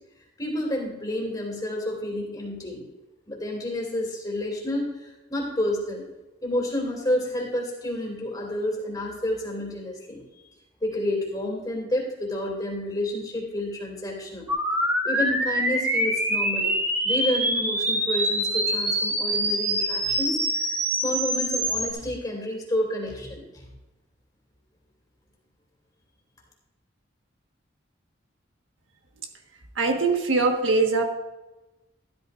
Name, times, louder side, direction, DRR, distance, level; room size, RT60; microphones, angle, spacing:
voice 1, 0.4-2.8 3.3-6.0 6.4-10.2 10.8-14.5 15.0-16.7 17.0-23.6, left 1 dB, 20° left, -1 dB, 2.6 m, -30 dB
sound 1, 14.5-21.9, right 1 dB, 15° right, 1.3 m, -25 dB
voice 2, 29.7-31.0, right 3 dB, 85° right, 3 dB, 1.4 m, -22 dB
12.5 x 12.5 x 2.5 m, 1.1 s
head